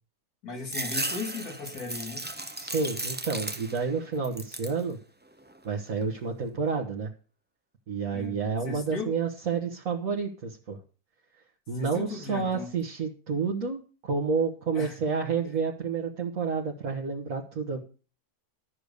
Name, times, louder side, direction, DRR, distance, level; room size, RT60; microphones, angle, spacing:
voice 1, 0.4-2.3 8.1-8.4 8.6-9.1 11.7-12.7 14.7-15.0, left 4 dB, 85° left, 2 dB, 2.8 m, -37 dB
sound 1, 0.6-3.9 4.2-4.8 5.3-6.0, right 1 dB, 15° right, 0.4 m, -35 dB
voice 2, 2.6-5.0 5.6-7.1 7.9-10.8 11.7-17.8, right 5 dB, 65° right, -1 dB, 1.8 m, -30 dB
13.0 x 6.8 x 6.6 m, 0.37 s
omnidirectional pair, 1.6 m